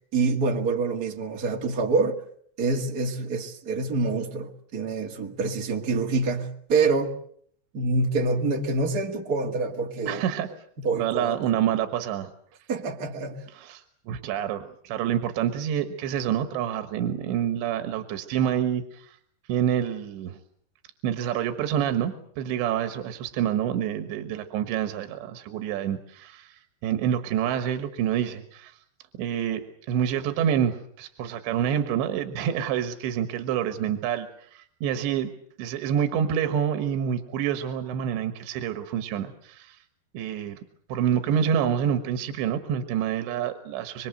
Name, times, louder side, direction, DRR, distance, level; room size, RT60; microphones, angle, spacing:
voice 1, 0.1-2.2 2.6-7.1 7.7-10.2 10.8-11.4 12.7-13.4, right 3 dB, 45° right, 1.2 m, -26 dB
voice 2, 10.1-10.5 10.9-12.3 13.5-19.2 19.5-20.4 21.0-28.7 29.2-35.3 35.6-39.8 40.1-40.6 40.9-44.1, right 9 dB, 80° right, 3.7 m, -27 dB
25.0 x 25.0 x 7.8 m
omnidirectional pair, 5.1 m